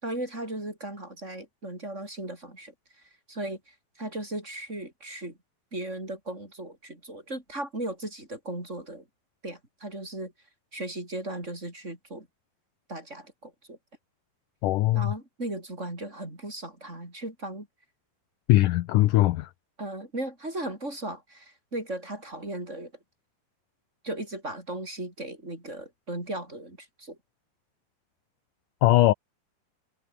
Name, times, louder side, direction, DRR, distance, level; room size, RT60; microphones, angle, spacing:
voice 1, 0.0-2.7 3.3-5.4 5.7-9.0 9.4-10.3 10.7-12.3 12.9-13.8 14.9-17.7 19.8-22.9 24.0-27.2, right 1 dB, 15° right, 5.8 m, -36 dB
voice 2, 14.6-15.1 18.5-19.5 28.8-29.1, left 16 dB, 75° left, 2.0 m, -20 dB
omnidirectional pair, 4.4 m